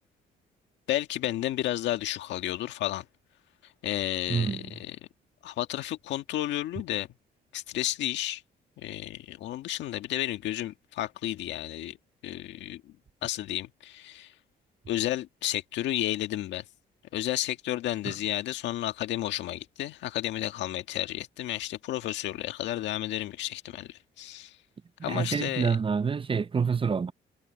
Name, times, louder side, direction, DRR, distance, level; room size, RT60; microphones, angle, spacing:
voice 1, 0.9-3.0 3.8-5.0 5.4-7.1 7.5-8.4 8.8-12.0 12.2-12.9 13.2-14.3 14.9-16.6 17.1-24.5 25.0-25.7, left 14 dB, 85° left, 1.8 m, -32 dB
voice 2, 4.3-4.7 18.0-18.1 25.0-27.1, right 5 dB, 30° right, 0.6 m, -27 dB
cardioid pair, 75°, 18 cm